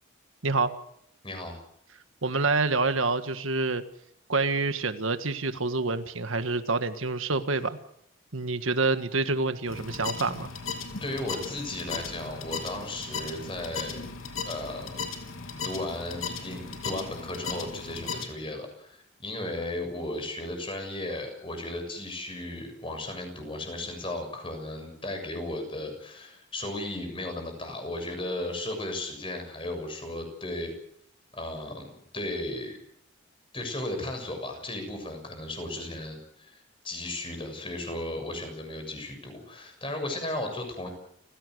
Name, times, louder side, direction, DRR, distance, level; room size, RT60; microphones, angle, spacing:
voice 1, 0.4-0.7 2.2-3.8 4.3-7.8 8.3-10.5, right 3 dB, 85° right, 9 dB, 1.7 m, -27 dB
voice 2, 1.2-1.6 11.0-14.0 14.5-15.2 15.6-30.7 31.3-32.8 33.5-40.9, left 1 dB, 25° left, 5 dB, 7.0 m, -35 dB
sound 1, 9.7-18.3, left 5 dB, 85° left, 3.7 m, -37 dB
29.5 x 16.5 x 8.0 m, 0.71 s
head